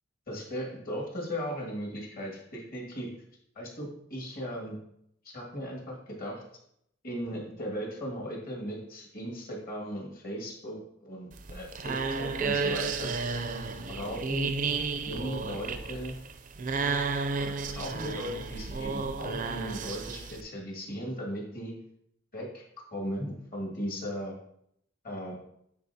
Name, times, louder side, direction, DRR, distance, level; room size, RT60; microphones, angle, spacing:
voice 1, 0.3-3.1 3.6-4.8 5.2-6.4 7.0-13.3 13.9-14.5 15.0-16.2 17.4-21.7 22.3-22.6 22.9-24.3 25.0-25.4, equal, 45° left, -2 dB, 2.1 m, -37 dB
sound 1, 11.3-20.4, right 4 dB, 40° right, 0.5 m, -32 dB
10.0 x 4.4 x 2.8 m, 0.74 s
head